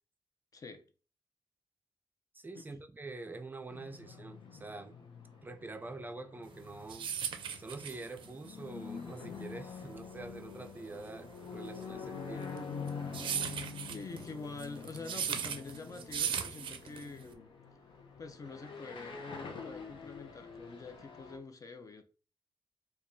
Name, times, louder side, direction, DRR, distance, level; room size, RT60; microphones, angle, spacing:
voice 1, 0.5-0.8 2.5-2.8 13.8-17.5 18.2-22.0, left 3 dB, 45° left, 0.5 m, -46 dB
voice 2, 2.3-4.9 5.4-7.1 7.6-12.5, right 3 dB, 25° right, 0.4 m, -46 dB
sound 1, 3.7-21.4, left 5 dB, 85° left, 0.7 m, -46 dB
sound 2, 6.5-17.3, right 8 dB, 90° right, 0.4 m, -38 dB
4.6 x 2.3 x 2.6 m
wide cardioid pair, 105°, 8 cm